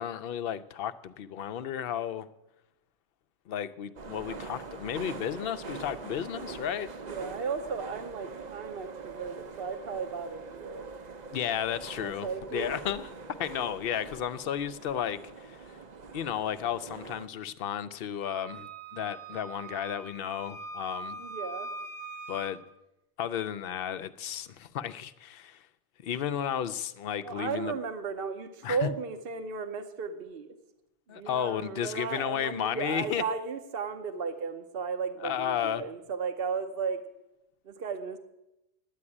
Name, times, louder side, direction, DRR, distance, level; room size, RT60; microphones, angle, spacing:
voice 1, 0.0-2.3 3.5-7.0 11.3-13.1 13.4-15.8 16.1-21.2 22.3-22.6 23.2-25.7 26.0-27.7 28.6-28.9 31.1-33.2 35.2-35.8, left 9 dB, 65° left, 13 dB, 0.8 m, -33 dB
sound 1, 4.0-17.3, right 4 dB, 45° right, 0.8 m, -43 dB
voice 2, 7.0-10.9 12.0-12.7 21.2-21.7 27.2-30.6 31.1-37.0 37.6-38.2, right 5 dB, 60° right, 9 dB, 1.1 m, -35 dB
Wind instrument woodwind instrument, 18.2-22.6, right 3 dB, 85° right, 1.4 m, -41 dB
9.8 x 8.5 x 9.7 m, 0.93 s
omnidirectional pair, 1.1 m